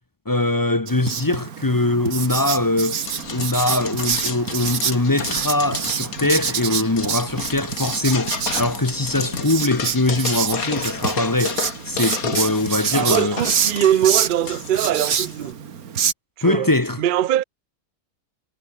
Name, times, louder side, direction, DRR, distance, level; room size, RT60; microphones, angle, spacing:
voice 1, 0.3-3.0 3.3-13.4 16.4-17.0, left 2 dB, 15° left, 0.8 m, -22 dB
Writing, 0.9-16.1, right 7 dB, 80° right, 1.9 m, -27 dB
sound 1, 3.0-15.5, left 5 dB, 75° left, 2.5 m, -31 dB
voice 2, 12.9-15.6 16.4-16.7 17.0-17.4, right 11 dB, 55° right, 0.5 m, -21 dB
omnidirectional pair, 1.5 m